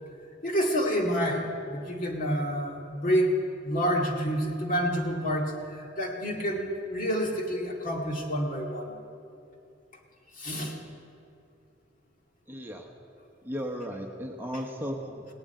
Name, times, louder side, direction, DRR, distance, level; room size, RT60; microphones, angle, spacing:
voice 1, 0.4-3.4 3.6-9.0 10.4-10.8, equal, 45° left, 0 dB, 2.1 m, -28 dB
voice 2, 12.5-12.9 13.4-15.3, equal, 10° right, 1 dB, 1.0 m, -35 dB
18.0 x 8.0 x 9.3 m, 2.6 s
head